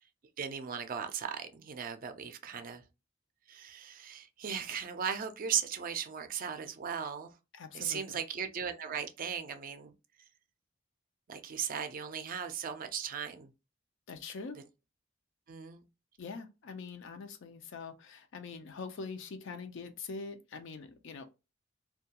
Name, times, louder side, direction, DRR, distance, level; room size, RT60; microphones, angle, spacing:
voice 1, 0.4-2.8 3.5-7.3 7.7-9.9 11.3-13.5 15.5-15.9, right 7 dB, 45° right, 0.4 m, -37 dB
voice 2, 7.5-8.2 14.1-14.6 16.2-21.2, left 4 dB, 65° left, 0.5 m, -44 dB
2.3 x 2.2 x 2.8 m
head